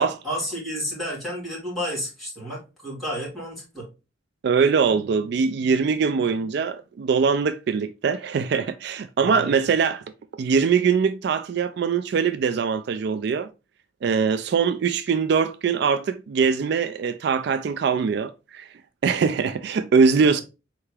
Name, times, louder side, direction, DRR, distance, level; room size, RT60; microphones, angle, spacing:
voice 1, 0.0-3.9 9.2-9.5 20.2-20.3, equal, ahead, 2.7 m, -31 dB
voice 2, 4.4-10.0 10.4-13.5 14.0-18.7 19.0-20.4, right 5 dB, 60° right, 0.3 m, -22 dB
4.5 x 3.4 x 3.2 m
head